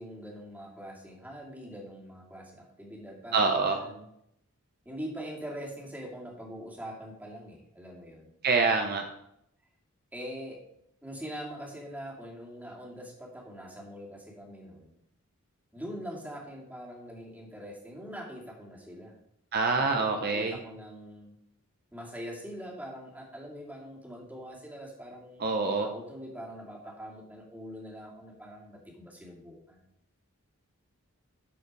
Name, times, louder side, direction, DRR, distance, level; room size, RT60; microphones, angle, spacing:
voice 1, 0.0-4.0 4.8-8.3 10.1-10.6 11.0-15.0 15.7-19.1 19.8-21.3 21.9-25.5 25.8-29.8, equal, 10° right, -3 dB, 2.4 m, -43 dB
voice 2, 3.3-3.8 8.4-9.0 19.5-20.6 25.4-25.9, right 4 dB, 45° right, 4 dB, 0.8 m, -26 dB
12.5 x 4.9 x 4.8 m, 0.75 s
head